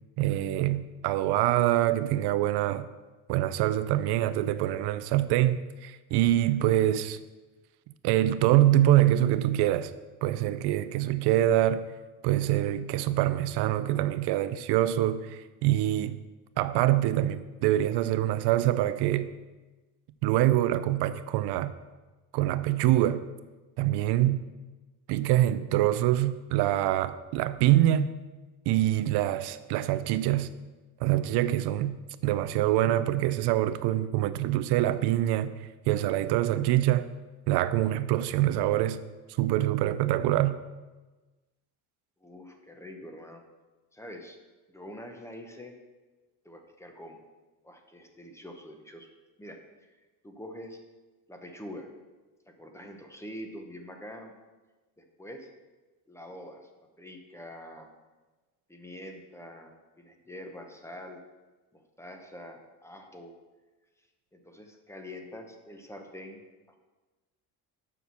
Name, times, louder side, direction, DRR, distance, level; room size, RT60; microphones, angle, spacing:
voice 1, 0.2-2.9 3.3-7.2 8.0-9.9 10.2-11.9 12.2-16.2 16.6-19.3 20.2-21.7 22.3-23.3 23.8-24.5 25.1-28.2 28.7-30.5 31.0-35.5 35.9-37.1 37.5-39.0 39.4-40.6, right 13 dB, 85° right, 13 dB, 0.6 m, -25 dB
voice 2, 42.2-43.4 43.9-44.4 44.7-45.7 46.4-47.2 47.6-49.1 49.4-49.9 50.2-50.8 51.3-51.9 52.5-54.3 55.0-55.5 56.1-56.7 57.0-57.9 58.7-59.7 60.0-61.2 61.7-63.3 64.3-66.4 66.7-66.8, left 1 dB, 5° left, 4 dB, 0.9 m, -45 dB
7.0 x 6.1 x 6.9 m, 1.2 s
cardioid pair, 145°, 39 cm